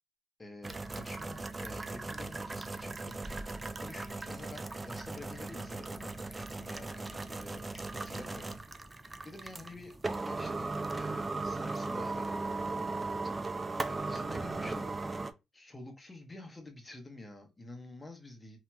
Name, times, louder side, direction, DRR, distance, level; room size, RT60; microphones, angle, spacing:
voice 1, 0.4-8.6 9.2-13.1 13.9-15.1 15.5-18.6, left 2 dB, 20° left, 1.0 m, -49 dB
sound 1, 0.6-15.3, right 3 dB, 25° right, 0.4 m, -38 dB
2.8 x 2.8 x 2.3 m
cardioid pair, 90°, 0 cm